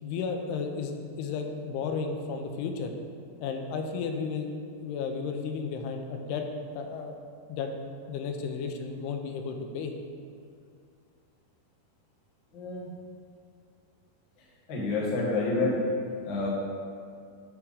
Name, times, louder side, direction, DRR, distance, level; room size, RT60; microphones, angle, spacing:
voice 1, 0.0-2.9 3.4-4.5 4.8-6.4 6.7-7.1 7.5-7.7 8.1-9.9, left 5 dB, 85° left, 4 dB, 2.7 m, -33 dB
voice 2, 12.5-12.9 14.7-15.8 16.2-16.5, left 3 dB, 55° left, -4 dB, 1.2 m, -28 dB
9.9 x 3.6 x 6.6 m, 2.3 s
omnidirectional pair, 4.6 m